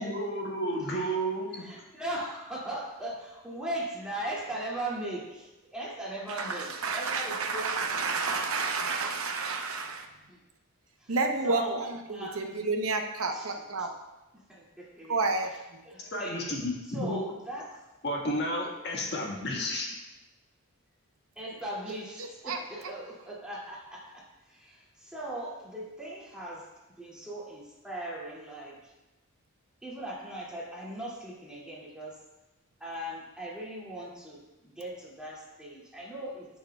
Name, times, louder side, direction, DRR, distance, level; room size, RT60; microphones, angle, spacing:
voice 1, 0.0-1.5 16.1-17.2 18.0-19.9, equal, 50° left, -1 dB, 1.6 m, -31 dB
voice 2, 1.5-7.7 10.3-10.4 11.0-11.1 11.4-11.8 12.1-12.4 13.3-13.5 14.5-15.3 15.8-16.5 16.9-17.8 21.4-26.6 27.0-28.8 29.8-32.1 32.8-36.5, right 1 dB, 5° right, -7 dB, 2.3 m, -39 dB
voice 3, 6.3-10.1 11.1-13.9 15.1-15.8 21.9-22.6, right 3 dB, 75° right, 4 dB, 0.8 m, -31 dB
14.0 x 6.4 x 2.3 m, 1.1 s
head